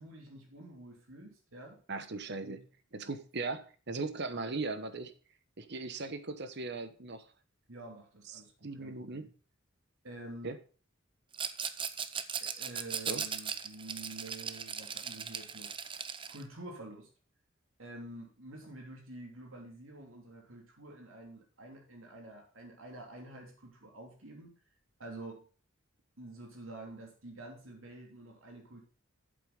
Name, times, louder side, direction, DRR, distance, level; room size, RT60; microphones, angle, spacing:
voice 1, 0.0-1.8 2.4-2.6 7.7-9.3 10.0-10.5 12.4-15.7 16.3-17.1 17.8-24.5 25.0-25.4 26.2-28.8, right 2 dB, 80° right, 1 dB, 3.2 m, -48 dB
voice 2, 1.9-2.6 2.9-5.1 5.6-7.3 8.3-9.3 10.4-10.6 13.1-13.2, right 3 dB, 60° right, 11 dB, 1.1 m, -38 dB
Rattle, 11.3-16.4, right 7 dB, 25° right, 0.7 m, -38 dB
8.4 x 7.6 x 5.1 m, 0.38 s
head